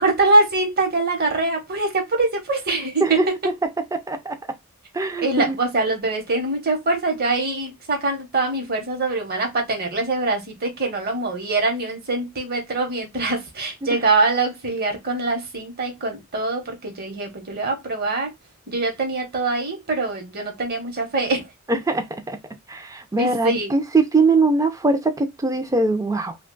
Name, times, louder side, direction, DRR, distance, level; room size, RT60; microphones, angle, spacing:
voice 1, 0.0-3.5 5.2-18.3 18.7-21.5 23.2-23.7, right 3 dB, 50° right, 1.0 m, -23 dB
voice 2, 3.9-4.4 4.9-5.5 21.7-22.4 22.7-26.4, right 3 dB, 15° right, 0.5 m, -21 dB
2.8 x 2.3 x 3.8 m
head